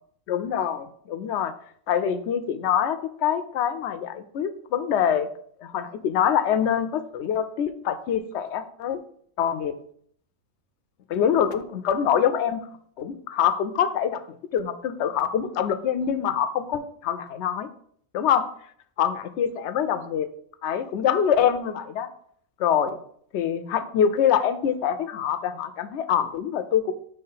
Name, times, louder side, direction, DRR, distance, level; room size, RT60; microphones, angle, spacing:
voice 1, 0.3-1.5 1.9-5.3 5.6-9.0 9.4-9.8 11.1-12.6 13.0-14.2 14.5-17.7 18.1-18.5 19.0-20.3 20.6-22.1 22.6-23.0 23.3-26.9, left 8 dB, 65° left, 11 dB, 0.8 m, -25 dB
5.6 x 3.5 x 5.6 m, 0.63 s
omnidirectional pair, 1.4 m